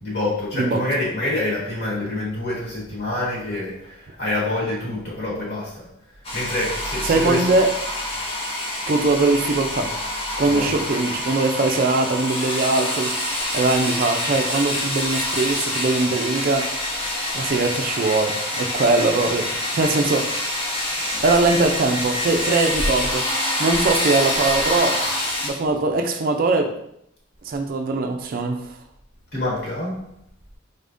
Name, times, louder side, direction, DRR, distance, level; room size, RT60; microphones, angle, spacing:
voice 1, 0.0-5.9 6.3-7.5 10.5-10.7 29.3-30.0, left 2 dB, 55° left, -5 dB, 1.5 m, -26 dB
sound 1, 6.2-25.5, left 1 dB, 30° left, 0.8 m, -26 dB
voice 2, 7.0-7.7 8.9-9.9 10.4-13.1 13.5-16.7 17.3-20.3 21.2-23.3 23.6-25.0 25.4-26.7 27.4-28.8, right 3 dB, 45° right, 5 dB, 0.4 m, -21 dB
4.2 x 3.5 x 2.5 m, 0.75 s
head